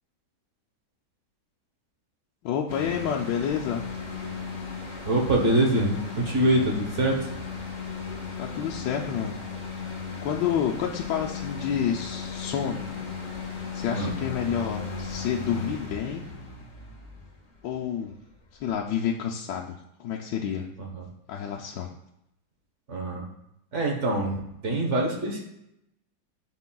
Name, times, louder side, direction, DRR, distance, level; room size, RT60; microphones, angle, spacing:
voice 1, 2.4-3.8 8.4-9.3 10.2-13.1 13.7-16.2 17.6-18.1 18.6-20.7 21.3-21.9, left 8 dB, 85° left, -1 dB, 1.3 m, -29 dB
sound 1, 2.7-18.9, left 5 dB, 35° left, 0.9 m, -36 dB
voice 2, 5.0-7.2 13.9-14.1 20.9-21.0 22.9-23.3 23.7-25.4, right 1 dB, 45° right, 0 dB, 1.3 m, -24 dB
11.0 x 4.3 x 2.3 m, 0.82 s
omnidirectional pair, 1.9 m